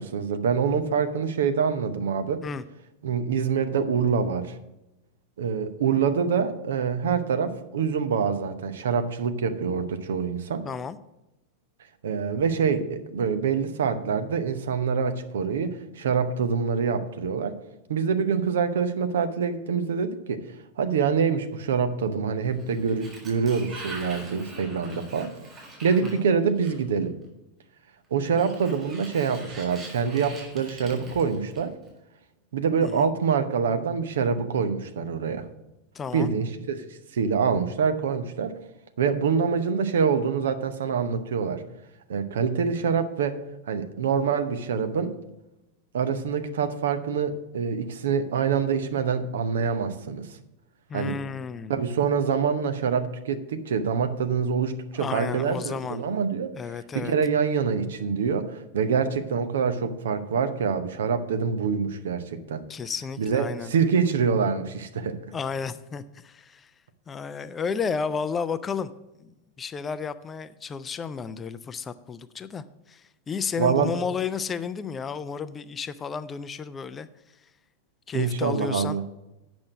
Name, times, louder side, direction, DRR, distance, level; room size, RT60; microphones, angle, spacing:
voice 1, 0.0-2.4 3.0-4.6 5.4-10.6 12.0-17.6 17.9-20.4 20.8-25.3 25.8-27.2 28.1-31.8 32.5-35.4 36.1-36.8 37.1-38.5 39.0-41.6 42.1-43.4 43.7-45.1 45.9-50.3 50.9-51.1 51.7-56.5 56.9-62.6 63.2-65.2 73.6-73.9 78.1-79.0, right 6 dB, 60° right, 9 dB, 0.8 m, -25 dB
voice 2, 10.6-11.0 26.0-26.3 32.8-33.1 35.9-36.3 50.9-51.8 54.9-56.2 56.6-57.1 62.7-63.7 65.3-66.7 67.1-68.9 69.2-69.3 69.6-77.1 78.1-79.0, left 6 dB, 20° left, 14 dB, 0.4 m, -32 dB
Sliding door, 22.4-27.0 28.2-31.9, right 2 dB, 25° right, 4.0 m, -43 dB
8.6 x 6.2 x 6.1 m, 0.94 s
figure-of-eight pair, 90°, 0 cm